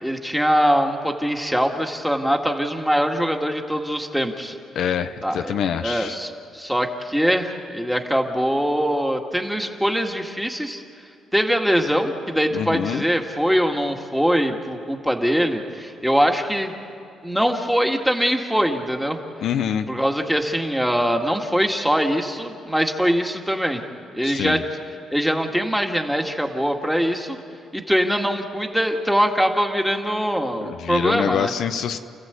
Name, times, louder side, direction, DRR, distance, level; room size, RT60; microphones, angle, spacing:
voice 1, 0.0-4.6 5.2-5.6 5.8-10.8 11.3-16.7 17.2-19.2 19.9-23.8 24.1-24.6 25.1-27.4 27.7-31.5, equal, ahead, 3 dB, 2.1 m, -22 dB
voice 2, 4.7-6.2 12.5-13.0 19.4-19.9 24.2-24.6 30.6-32.0, left 8 dB, 75° left, 9 dB, 0.9 m, -25 dB
30.0 x 14.5 x 8.3 m, 2.5 s
cardioid pair, 90°, 0 cm